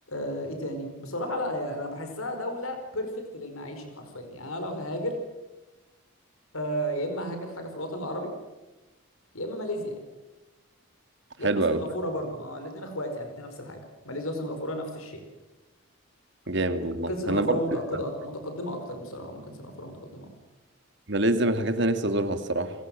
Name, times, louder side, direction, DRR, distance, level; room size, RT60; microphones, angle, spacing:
voice 1, 0.1-5.2 6.5-8.3 9.3-10.0 11.4-15.2 17.1-20.3, equal, 75° left, 6 dB, 4.8 m, -33 dB
voice 2, 11.4-11.8 16.5-17.6 17.9-18.0 21.1-22.7, right 2 dB, 55° right, 9 dB, 2.3 m, -25 dB
29.5 x 23.0 x 7.6 m, 1.1 s
head